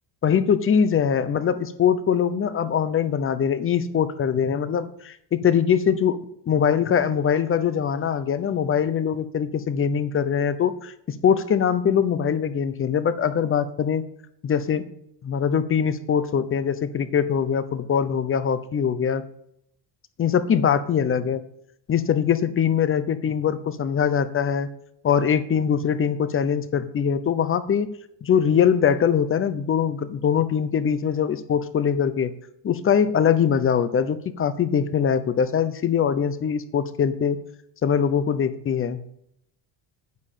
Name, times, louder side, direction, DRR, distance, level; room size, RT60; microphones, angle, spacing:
voice 1, 0.2-6.2 6.5-10.9 11.2-14.0 14.4-14.8 15.2-19.2 20.2-21.4 21.9-24.7 25.0-27.9 28.2-32.3 32.6-37.4 37.8-39.0, left 7 dB, 30° left, 13 dB, 0.8 m, -22 dB
9.6 x 8.8 x 7.4 m, 0.72 s
cardioid pair, 170°, 45 cm